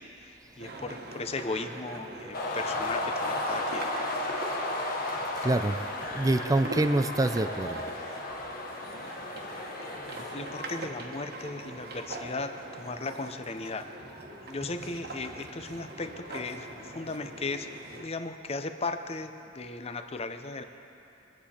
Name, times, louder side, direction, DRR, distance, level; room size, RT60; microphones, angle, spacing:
voice 1, 0.0-3.9 10.1-13.9 14.5-17.7 18.0-20.6, left 3 dB, 35° left, 8 dB, 0.6 m, -36 dB
sound 1, 0.6-18.0, right 2 dB, 60° right, 1.3 m, -42 dB
sound 2, 2.3-10.9, left 2 dB, 55° left, 1.4 m, -34 dB
voice 2, 5.4-5.8 6.1-7.8, right 2 dB, 20° right, 9 dB, 0.4 m, -25 dB
23.0 x 8.5 x 4.3 m, 2.8 s
head